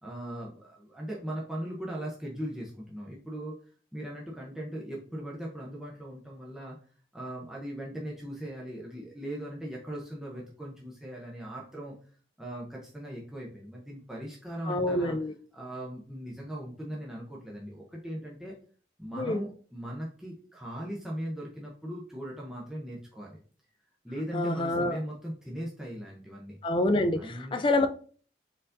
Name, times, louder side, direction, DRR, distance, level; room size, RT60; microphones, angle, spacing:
voice 1, 0.0-3.6 3.9-6.8 7.1-11.9 12.4-15.2 15.5-18.6 19.0-23.4 24.0-26.6 27.2-27.6, right 1 dB, 5° right, 0.6 m, -39 dB
voice 2, 14.7-15.3 19.2-19.4 24.3-25.0 26.6-27.9, left 2 dB, 25° left, 0.3 m, -27 dB
4.3 x 3.9 x 2.6 m
head